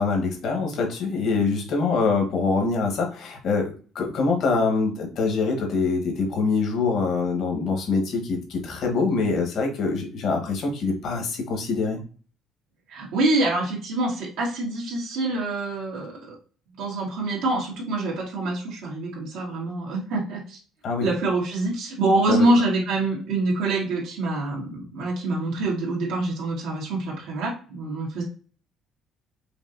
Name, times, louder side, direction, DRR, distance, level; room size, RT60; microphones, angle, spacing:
voice 1, 0.0-12.0 20.8-21.1 22.3-22.5, left 4 dB, 60° left, 2 dB, 1.3 m, -24 dB
voice 2, 12.9-16.4 16.8-20.6 21.0-28.2, right 2 dB, 90° right, -4 dB, 1.7 m, -25 dB
5.1 x 2.8 x 2.6 m, 0.39 s
cardioid pair, 115°, 0 cm